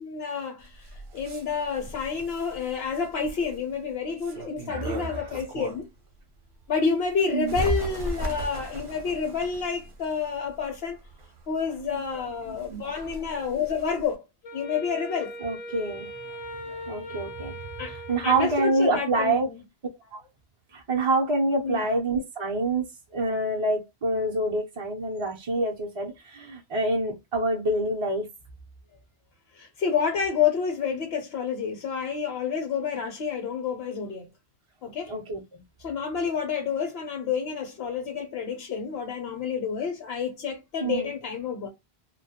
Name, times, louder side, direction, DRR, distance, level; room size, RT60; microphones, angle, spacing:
voice 1, 0.0-5.9 6.7-11.0 11.5-14.2 14.5-15.3 17.8-18.0 18.2-19.6 21.6-21.8 29.5-34.3 34.8-35.1 35.8-41.7, left 6 dB, 70° left, 0.8 m, -29 dB
Bird, 0.6-6.0 6.5-14.2, right 1 dB, 60° right, 0.8 m, -40 dB
voice 2, 4.7-5.4 7.3-7.6 13.0-13.1 15.4-16.1 16.9-17.5 17.9-19.5 20.1-20.2 20.7-28.3 35.1-35.6 40.8-41.1, right 2 dB, 45° right, 0.4 m, -27 dB
Wind instrument woodwind instrument, 14.4-19.1, equal, 50° left, 0.5 m, -40 dB
2.2 x 2.0 x 2.8 m
omnidirectional pair, 1.1 m